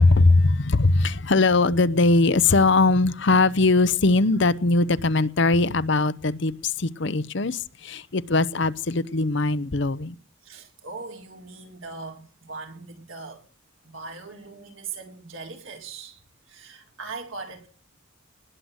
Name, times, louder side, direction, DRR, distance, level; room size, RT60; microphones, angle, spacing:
voice 1, 0.0-10.2, left 3 dB, 60° left, 0.8 m, -20 dB
voice 2, 10.4-13.4 13.8-16.2 16.5-17.7, right 4 dB, 75° right, 4.3 m, -39 dB
20.0 x 7.9 x 8.0 m
head